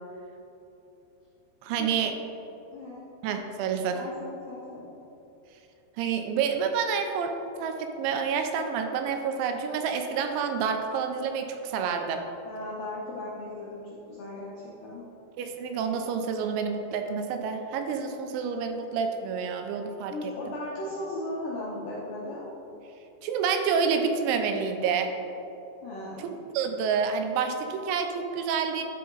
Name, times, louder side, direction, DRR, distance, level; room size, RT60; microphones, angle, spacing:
voice 1, 1.6-2.1 3.2-4.0 6.0-7.3 7.6-12.3 15.4-20.1 23.2-25.1 26.5-28.8, right 6 dB, 85° right, 6 dB, 2.9 m, -28 dB
voice 2, 2.7-3.0 3.9-4.9 12.4-15.0 20.1-22.4 25.8-26.4, left 1 dB, 75° left, -7 dB, 2.0 m, -37 dB
12.5 x 5.2 x 3.9 m, 2.9 s
omnidirectional pair, 5.3 m